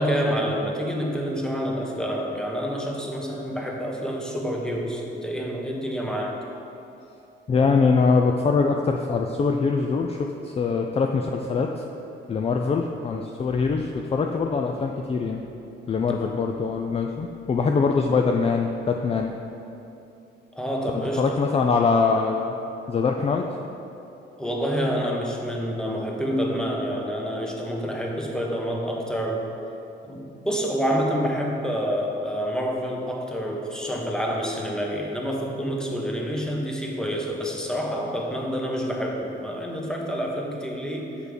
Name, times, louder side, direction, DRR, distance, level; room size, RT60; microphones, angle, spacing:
voice 1, 0.0-6.4 20.5-21.3 24.4-29.5 30.1-41.1, equal, 5° left, -1 dB, 1.1 m, -28 dB
voice 2, 7.5-11.8 12.3-15.4 15.9-19.3 21.2-22.5 22.9-23.5, left 4 dB, 30° left, 3 dB, 0.4 m, -23 dB
6.7 x 4.8 x 5.1 m, 2.8 s
cardioid pair, 90°, 20 cm